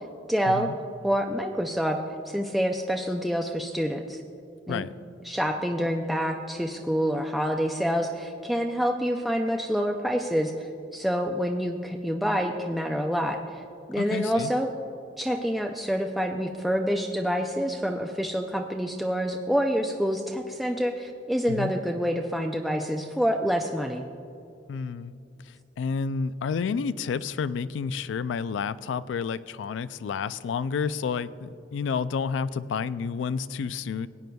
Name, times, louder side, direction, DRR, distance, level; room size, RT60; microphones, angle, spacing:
voice 1, 0.3-0.7 1.0-2.0 2.3-4.2 4.7-4.8 5.3-13.6 13.9-14.7 15.2-24.0, equal, ahead, 2 dB, 0.4 m, -27 dB
voice 2, 14.0-14.5 21.5-21.7 24.7-25.2 25.4-34.1, left 6 dB, 85° left, 16 dB, 0.3 m, -30 dB
18.0 x 9.2 x 2.3 m, 2.6 s
head